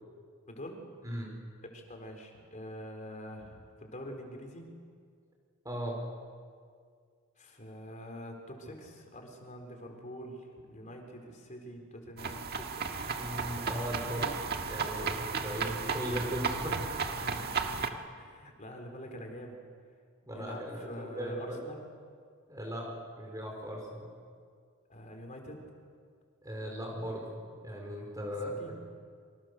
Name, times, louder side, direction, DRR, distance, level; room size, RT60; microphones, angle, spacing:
voice 1, 0.5-0.8 1.6-4.7 7.4-12.9 18.2-19.6 20.3-21.8 24.9-25.7 28.4-28.7, equal, 35° left, 3 dB, 4.2 m, -45 dB
voice 2, 5.6-6.0 13.2-14.3 14.7-17.0 17.4-17.6 20.3-21.6 22.5-24.1 26.4-27.3 27.6-28.5, equal, 15° right, 0 dB, 4.5 m, -38 dB
sound 1, 12.2-17.9, right 5 dB, 50° right, 1.7 m, -34 dB
27.5 x 25.5 x 6.7 m, 2.1 s
head